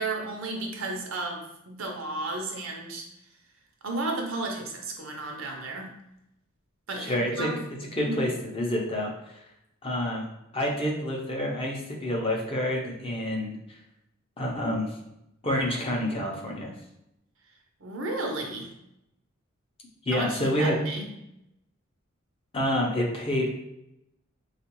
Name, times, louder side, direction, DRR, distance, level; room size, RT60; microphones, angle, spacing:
voice 1, 0.0-3.0 3.8-5.9 6.9-7.6 7.9-8.2 17.8-18.7 20.1-21.1, right 2 dB, 75° right, 1 dB, 0.7 m, -33 dB
voice 2, 6.9-7.5 8.0-9.1 9.8-10.3 10.5-13.6 14.4-15.0 15.4-16.7 20.1-20.7 22.5-23.5, left 1 dB, 25° left, -1 dB, 0.6 m, -28 dB
3.7 x 2.4 x 3.0 m, 0.84 s
head